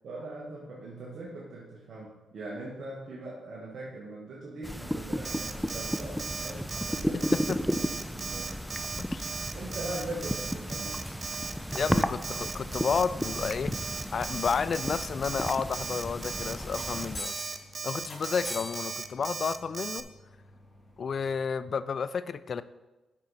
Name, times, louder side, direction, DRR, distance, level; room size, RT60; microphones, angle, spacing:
voice 1, 0.0-8.5 9.5-11.0, right 2 dB, 70° right, -4 dB, 1.5 m, -41 dB
sound 1, 4.6-17.2, equal, ahead, 0.5 m, -34 dB
Alarm, 5.2-20.0, right 5 dB, 50° right, 0.6 m, -37 dB
sound 2, 9.5-21.5, left 1 dB, 30° left, 3.1 m, -47 dB
voice 2, 11.7-13.7 14.1-17.4 17.8-20.1 21.0-22.6, left 6 dB, 55° left, 15 dB, 0.4 m, -31 dB
8.8 x 6.2 x 4.1 m, 1.1 s
supercardioid pair, 55°, 0 cm